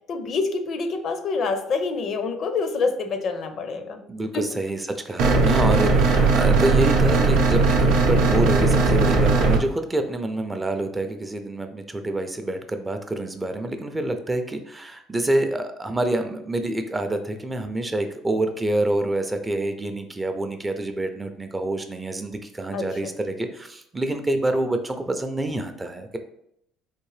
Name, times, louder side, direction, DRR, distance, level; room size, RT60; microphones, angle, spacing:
voice 1, 0.1-4.0 4.3-4.6 22.7-23.1, left 4 dB, 50° left, 8 dB, 0.5 m, -27 dB
voice 2, 4.1-26.2, right 1 dB, 15° right, 7 dB, 0.4 m, -27 dB
sound 1, 5.2-9.6, right 3 dB, 80° right, 0.6 m, -18 dB
3.6 x 2.5 x 3.2 m, 0.75 s
cardioid pair, 110°, 0 cm